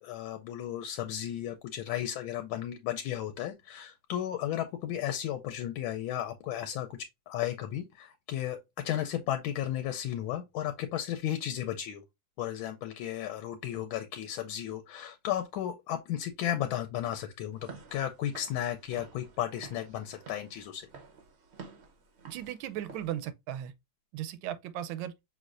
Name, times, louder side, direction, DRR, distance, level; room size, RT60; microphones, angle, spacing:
voice 1, 0.0-12.0 12.4-17.6 17.9-20.9, left 11 dB, 85° left, 1.4 m, -34 dB
Walk footsteps / Siren, 17.5-23.1, right 4 dB, 50° right, 0.8 m, -51 dB
voice 2, 22.3-23.7 24.1-25.1, right 11 dB, 80° right, 1.4 m, -36 dB
5.6 x 3.1 x 2.4 m
omnidirectional pair, 2.2 m